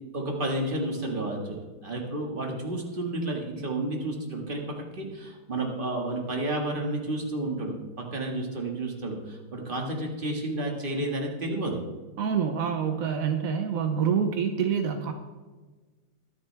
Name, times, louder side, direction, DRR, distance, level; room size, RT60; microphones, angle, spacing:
voice 1, 0.1-11.8, right 1 dB, 25° right, 1 dB, 1.8 m, -31 dB
voice 2, 12.2-15.1, right 7 dB, 70° right, 6 dB, 0.8 m, -26 dB
22.0 x 7.4 x 3.4 m, 1.3 s
omnidirectional pair, 2.4 m